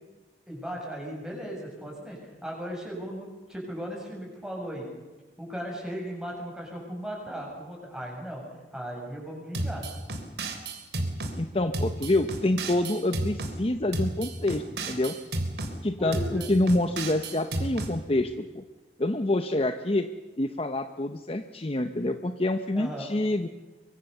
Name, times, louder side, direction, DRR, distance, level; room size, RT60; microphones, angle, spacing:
voice 1, 0.5-4.9 5.4-8.4 8.7-9.8 16.0-16.5 22.7-23.1, equal, 5° right, -1 dB, 7.2 m, -37 dB
sound 1, 9.5-11.4 11.7-13.5 13.9-15.7 16.1-17.9, right 2 dB, 70° right, 3.6 m, -32 dB
voice 2, 11.4-15.1 15.8-18.6 19.0-20.1 20.4-23.5, left 1 dB, 35° left, 8 dB, 0.9 m, -27 dB
24.0 x 23.5 x 6.9 m, 1.2 s
head